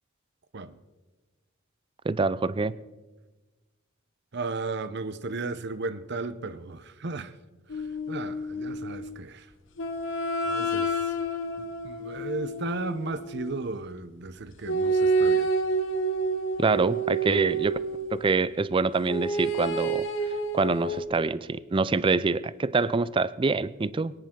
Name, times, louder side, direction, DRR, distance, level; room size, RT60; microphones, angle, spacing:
voice 1, 2.1-2.8 16.6-17.8 18.1-20.1 20.5-24.1, right 3 dB, 25° right, 0.4 m, -25 dB
voice 2, 4.3-7.4 7.7-9.5 10.4-11.1 11.8-15.5, right 3 dB, 55° right, 0.8 m, -35 dB
sound 1, 7.7-9.2 9.8-13.6 14.7-18.3 19.0-21.0, right 2 dB, 65° left, 1.1 m, -29 dB
23.0 x 10.5 x 3.7 m
head